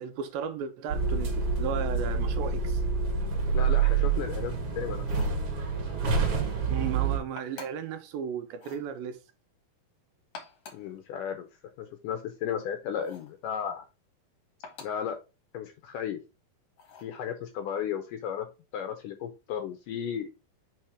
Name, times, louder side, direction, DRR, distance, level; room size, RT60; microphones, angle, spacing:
voice 1, 0.0-2.8 6.7-9.2, right 7 dB, 80° right, 2.3 m, -35 dB
sound 1, 0.9-7.2, right 5 dB, 50° right, 1.8 m, -27 dB
voice 2, 3.5-5.0 10.7-11.5 11.8-13.9 14.8-15.2 15.5-16.2 17.0-18.5 18.7-20.3, left 8 dB, 80° left, 1.9 m, -34 dB
sound 2, 5.0-5.4 7.4-7.9 8.5-8.9 10.2-10.9 13.0-13.4 14.6-15.1 16.8-17.2, left 5 dB, 50° left, 1.9 m, -47 dB
5.6 x 4.4 x 4.7 m
omnidirectional pair, 4.4 m